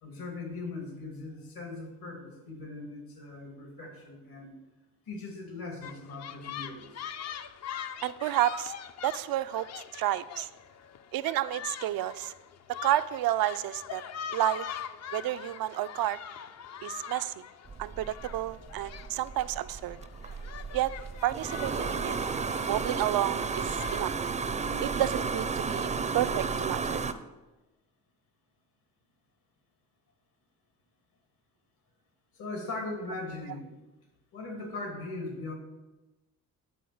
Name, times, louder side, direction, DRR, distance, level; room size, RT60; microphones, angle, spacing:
voice 1, 0.0-4.6 5.1-7.0 32.3-33.8 34.3-35.5, left 2 dB, 80° left, 3 dB, 2.6 m, -39 dB
sound 1, 5.8-24.0, left 9 dB, 45° left, 0.5 m, -43 dB
voice 2, 8.0-8.7 9.0-9.7 9.9-10.5 11.1-12.3 12.8-14.0 14.3-14.7 15.1-16.2 16.8-17.3 17.8-20.0 20.7-20.9 21.2-22.2 22.7-24.1 24.8-27.0, right 13 dB, 80° right, 13 dB, 0.5 m, -30 dB
sound 2, 17.7-27.1, right 5 dB, 20° right, 0.4 m, -33 dB
10.0 x 4.1 x 7.0 m, 1.1 s
cardioid pair, 125°, 35 cm